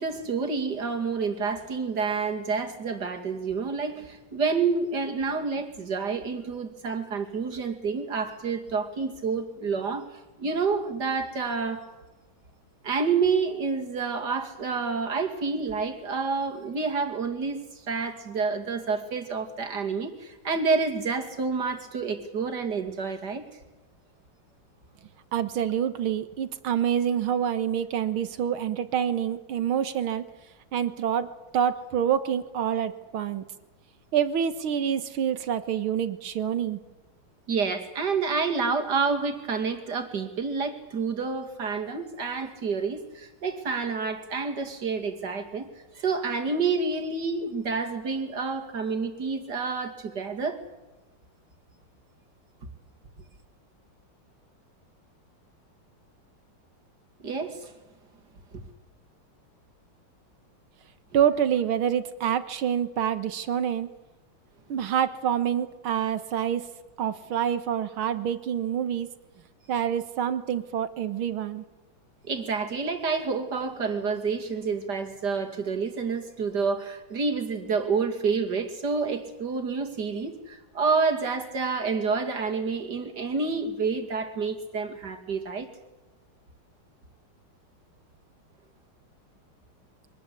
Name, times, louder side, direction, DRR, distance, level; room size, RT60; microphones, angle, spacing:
voice 1, 0.0-11.8 12.8-23.5 37.5-45.7 45.9-50.6 57.2-57.7 58.5-58.6 72.3-85.7, right 4 dB, 50° right, 4 dB, 3.0 m, -28 dB
voice 2, 25.3-30.3 30.7-31.3 31.5-33.4 34.1-36.8 61.1-63.9 64.7-66.7 67.0-69.1 69.7-71.6, right 9 dB, 85° right, 11 dB, 2.2 m, -27 dB
24.0 x 19.0 x 8.5 m, 1.1 s
omnidirectional pair, 2.3 m